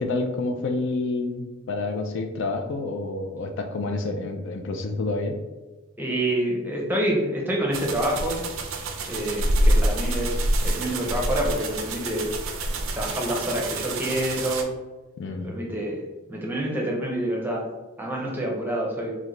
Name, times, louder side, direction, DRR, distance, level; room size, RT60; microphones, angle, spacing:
voice 1, 0.0-5.4 15.2-15.5, left 3 dB, 60° left, 4 dB, 0.4 m, -28 dB
voice 2, 6.0-8.4 9.1-12.3 12.9-14.7 15.4-17.6 18.0-19.1, right 1 dB, 10° right, -2 dB, 0.6 m, -27 dB
sound 1, 7.7-14.6, right 1 dB, 65° right, 0.4 m, -26 dB
3.1 x 2.1 x 3.7 m, 1.2 s
head